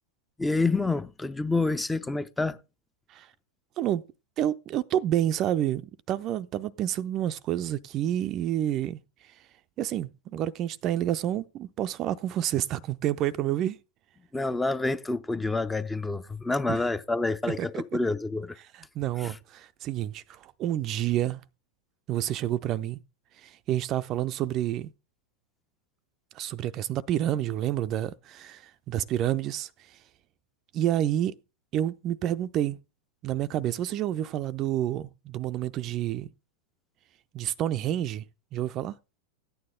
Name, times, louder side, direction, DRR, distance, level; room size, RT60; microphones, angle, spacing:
voice 1, 0.4-2.6 14.3-18.6 19.2-19.3, left 3 dB, 10° left, 0.6 m, -28 dB
voice 2, 4.4-9.3 9.8-13.8 16.7-16.8 17.6-17.8 18.7-21.4 22.1-23.0 23.4-24.9 26.3-30.0 30.7-31.4 31.7-32.8 33.2-36.3 37.3-38.2 38.5-39.0, right 12 dB, 35° right, 0.5 m, -29 dB
14.0 x 9.4 x 3.7 m
figure-of-eight pair, 90°, 0 cm